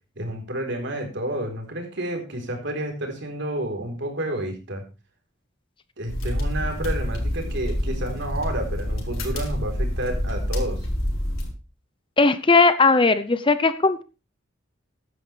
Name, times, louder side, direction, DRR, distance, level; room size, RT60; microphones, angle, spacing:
voice 1, 0.2-4.8 6.0-10.8, right 1 dB, 60° right, 3 dB, 4.1 m, -30 dB
sound 1, 6.1-11.5, equal, 85° left, 4.3 m, -27 dB
voice 2, 12.2-14.0, left 3 dB, 25° left, 12 dB, 0.7 m, -18 dB
15.0 x 11.0 x 3.4 m, 0.31 s
head